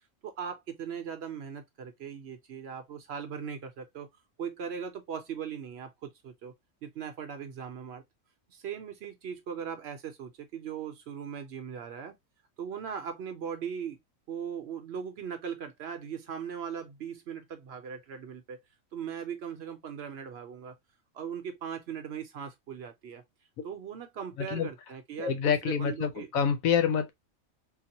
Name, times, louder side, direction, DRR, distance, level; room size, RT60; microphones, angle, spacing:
voice 1, 0.2-4.1 4.4-6.5 6.8-8.0 8.5-12.1 12.6-14.0 14.3-18.6 18.9-20.7 21.1-23.2 23.6-26.3, right 7 dB, 60° right, 0.8 m, -39 dB
voice 2, 24.4-24.7 25.2-27.1, left 7 dB, 90° left, 1.1 m, -27 dB
3.8 x 2.1 x 2.8 m
omnidirectional pair, 1.4 m